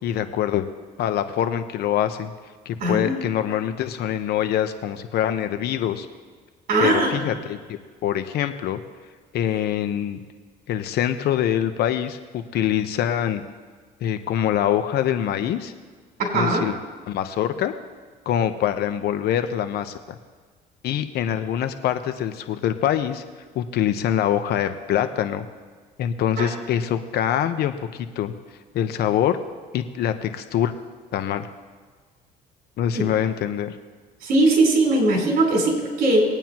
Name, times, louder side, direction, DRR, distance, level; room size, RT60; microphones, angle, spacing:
voice 1, 0.0-0.7 1.0-2.3 2.7-6.1 6.8-7.6 8.0-8.8 9.3-10.2 10.7-13.4 14.0-15.7 16.3-16.8 17.1-17.7 18.3-20.2 20.8-23.2 23.5-25.4 26.0-28.3 28.7-29.4 29.7-30.7 31.1-31.5 32.8-33.8, left 10 dB, 70° left, 10 dB, 0.9 m, -24 dB
voice 2, 2.8-3.1 6.7-7.3 16.3-16.7 26.4-26.5 32.9-33.0 34.2-36.2, right 2 dB, 60° right, -1 dB, 3.9 m, -20 dB
21.0 x 9.0 x 3.0 m, 1.5 s
cardioid pair, 110°, 17 cm